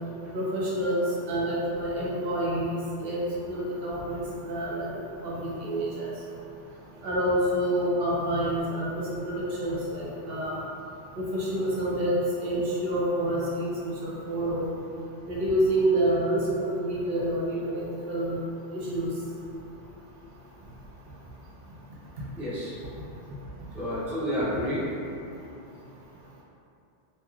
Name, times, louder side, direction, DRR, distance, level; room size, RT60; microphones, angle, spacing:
voice 1, 0.3-3.2 3.5-6.1 7.0-10.6 11.2-12.2 12.4-14.7 15.3-18.4 18.7-19.1, right 1 dB, 60° right, -6 dB, 0.8 m, -28 dB
voice 2, 22.4-22.7 23.7-24.8, equal, 5° right, -10 dB, 0.3 m, -29 dB
2.9 x 2.8 x 2.3 m, 2.7 s
omnidirectional pair, 1.2 m